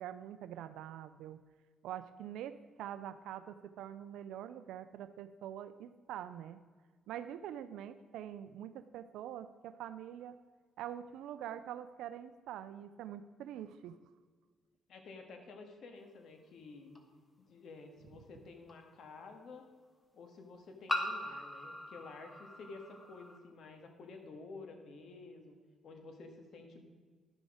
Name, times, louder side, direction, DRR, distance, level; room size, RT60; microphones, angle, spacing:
voice 1, 0.0-1.4 1.8-6.6 7.1-10.3 10.8-14.0, right 10 dB, 90° right, 12 dB, 0.4 m, -45 dB
voice 2, 14.9-17.0 17.4-19.7 20.1-25.6 25.8-26.9, left 3 dB, 65° left, 4 dB, 1.6 m, -51 dB
sound 1, 16.9-17.0 18.7-18.8 20.9-23.4, left 1 dB, 20° left, 1.3 m, -40 dB
11.5 x 6.2 x 5.0 m, 1.5 s
cardioid pair, 90°, 0 cm